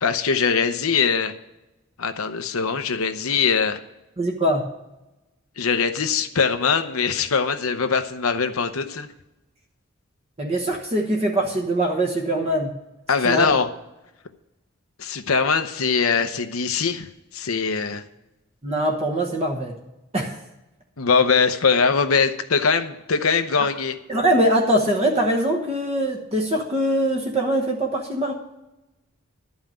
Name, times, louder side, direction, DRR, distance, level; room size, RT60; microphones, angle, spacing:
voice 1, 0.0-1.3 2.0-3.8 5.6-9.1 13.1-13.7 15.0-17.1 17.3-18.0 21.0-24.0, left 5 dB, 85° left, 9 dB, 0.8 m, -22 dB
voice 2, 4.2-4.6 10.4-12.7 13.2-13.5 18.6-19.7 20.1-20.4 24.1-28.3, right 1 dB, 30° right, 1 dB, 1.1 m, -22 dB
12.0 x 5.7 x 8.8 m, 0.97 s
head